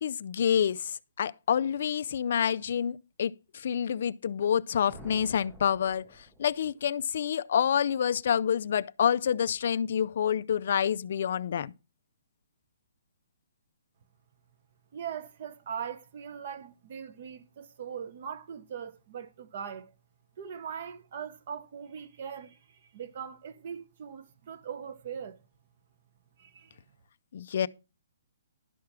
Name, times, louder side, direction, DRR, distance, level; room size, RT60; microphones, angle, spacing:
voice 1, 0.0-6.1 6.4-11.7 27.3-27.7, left 8 dB, 40° left, 0.4 m, -28 dB
sound 1, 4.9-6.8, right 1 dB, 5° right, 0.6 m, -50 dB
voice 2, 14.9-19.9 20.4-25.4 26.4-26.8, right 7 dB, 35° right, 1.0 m, -40 dB
11.5 x 4.8 x 6.0 m
hypercardioid pair, 180°, 0 cm